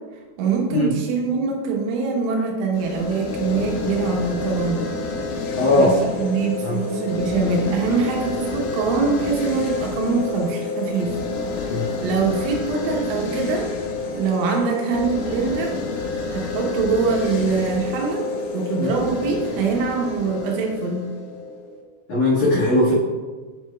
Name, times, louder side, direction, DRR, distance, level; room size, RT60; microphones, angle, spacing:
voice 1, 0.4-4.9 5.7-11.1 11.7-13.7 14.1-15.7 16.3-18.3 18.5-21.0, right 4 dB, 80° right, 0 dB, 3.3 m, -23 dB
sound 1, 2.7-21.8, left 3 dB, 85° left, 3.2 m, -29 dB
voice 2, 5.6-5.9 6.6-6.8 11.7-11.9 18.8-18.9 22.1-22.9, left 2 dB, 55° left, -11 dB, 2.3 m, -19 dB
7.9 x 7.5 x 2.3 m, 1.4 s
omnidirectional pair, 5.6 m